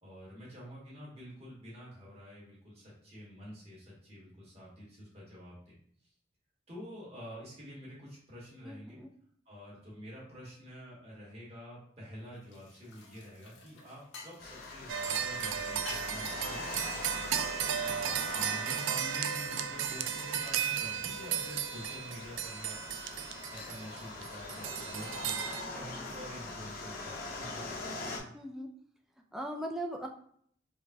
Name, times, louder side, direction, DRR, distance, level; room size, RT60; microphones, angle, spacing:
voice 1, 0.0-5.7 6.7-9.0 9.4-17.5 17.8-25.4 25.7-28.0, equal, 30° right, -7 dB, 1.4 m, -48 dB
voice 2, 8.6-9.1 28.3-28.7 29.3-30.1, right 1 dB, ahead, 2 dB, 0.3 m, -39 dB
sound 1, 12.2-19.0 19.5-22.5 23.0-23.3 23.6-24.0 24.4-24.7 25.8-26.4, left 3 dB, 85° left, 0.8 m, -52 dB
sound 2, 14.4-28.2, left 3 dB, 50° left, 0.6 m, -43 dB
sound 3, 14.9-25.6, right 8 dB, 85° right, 0.3 m, -35 dB
5.0 x 2.2 x 2.7 m, 0.63 s
head